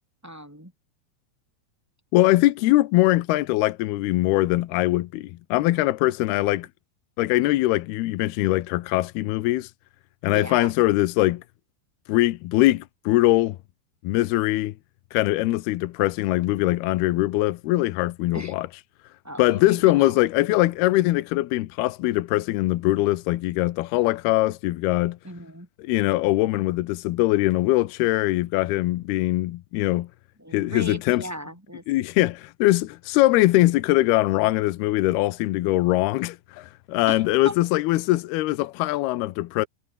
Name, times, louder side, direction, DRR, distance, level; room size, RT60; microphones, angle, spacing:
voice 1, 0.2-0.7 10.3-10.7 18.3-18.6 19.2-20.2 25.2-25.7 30.4-31.8 35.1-35.2 37.1-37.5, equal, 5° right, 5.1 m, -37 dB
voice 2, 2.1-6.7 7.2-9.7 10.2-11.4 12.1-13.6 14.0-14.7 15.1-18.7 19.4-25.2 25.8-30.1 30.5-31.2 31.9-39.7, left 17 dB, 80° left, 2.9 m, -22 dB
omnidirectional pair, 4.6 m